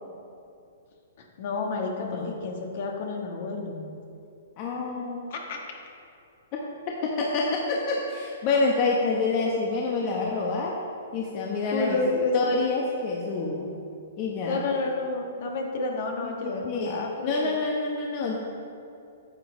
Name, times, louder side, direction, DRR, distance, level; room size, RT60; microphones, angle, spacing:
voice 1, 1.2-3.9 5.3-5.6 11.7-12.5 14.4-17.5 18.2-18.4, left 3 dB, 55° left, 1 dB, 1.4 m, -30 dB
voice 2, 2.0-2.3 4.6-5.2 7.0-10.7 11.1-12.0 12.3-13.7 14.2-14.7 16.2-17.0 17.2-18.4, left 3 dB, 40° left, -2 dB, 1.0 m, -27 dB
9.6 x 7.1 x 3.8 m, 2.5 s
hypercardioid pair, 130°, 0 cm